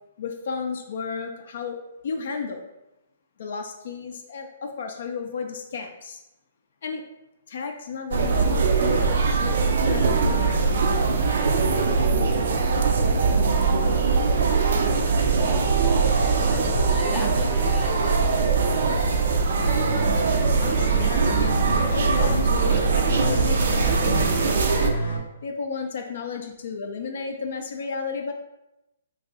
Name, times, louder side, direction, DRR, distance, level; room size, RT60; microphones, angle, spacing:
voice 1, 0.2-1.8 2.0-2.7 3.4-6.2 6.8-7.1 7.5-9.4 9.9-11.2 20.6-21.6 21.9-24.9 25.4-28.3, left 5 dB, 65° left, 4 dB, 0.4 m, -33 dB
sound 1, 8.1-24.9, right 4 dB, 65° right, 0.4 m, -21 dB
voice 2, 15.2-18.5, left 2 dB, 10° left, -2 dB, 0.5 m, -38 dB
sound 2, 19.6-25.2, right 2 dB, 85° left, 0.8 m, -31 dB
2.6 x 2.3 x 3.9 m, 0.93 s
hypercardioid pair, 135°, 0 cm